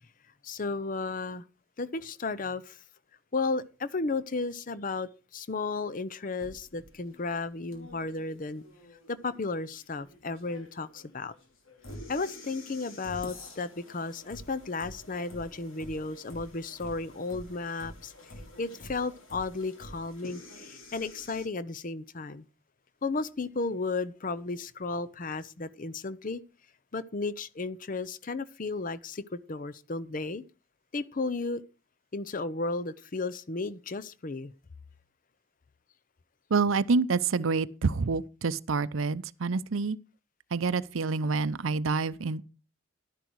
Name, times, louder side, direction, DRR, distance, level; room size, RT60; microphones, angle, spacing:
voice 1, 0.4-1.4 1.8-2.8 3.3-8.6 9.1-11.3 12.1-22.4 23.0-26.4 26.9-30.4 30.9-31.6 32.1-34.5, left 3 dB, 40° left, 0.7 m, -34 dB
sound 1, 6.4-21.5, left 1 dB, 90° left, 2.8 m, -48 dB
voice 2, 36.5-40.0 40.5-42.4, right 4 dB, 85° right, 0.6 m, -27 dB
12.0 x 10.5 x 4.6 m
head